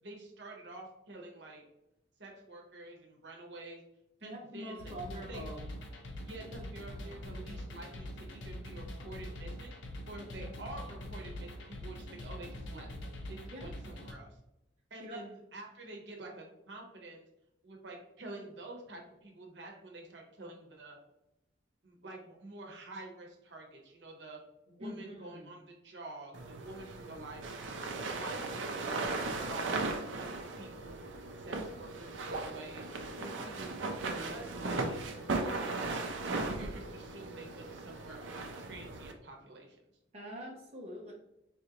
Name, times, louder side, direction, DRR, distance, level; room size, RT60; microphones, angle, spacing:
voice 1, 0.0-1.6 2.2-3.8 4.2-4.9 5.3-5.5 6.2-9.7 10.1-12.9 13.3-14.4 14.9-17.2 17.6-21.0 21.8-24.4 24.7-27.7 28.0-32.9 33.2-36.1 36.4-39.8, right 2 dB, 65° right, 0 dB, 0.9 m, -48 dB
voice 2, 4.2-5.7 10.4-10.5 13.5-13.7 15.0-15.2 24.8-25.5 33.2-33.4 40.1-41.1, equal, 35° right, -4 dB, 0.6 m, -44 dB
sound 1, 4.8-14.1, equal, 75° left, 0.6 m, -44 dB
sound 2, 26.3-39.1, right 3 dB, 85° right, 0.5 m, -37 dB
4.2 x 2.5 x 2.8 m, 0.87 s
head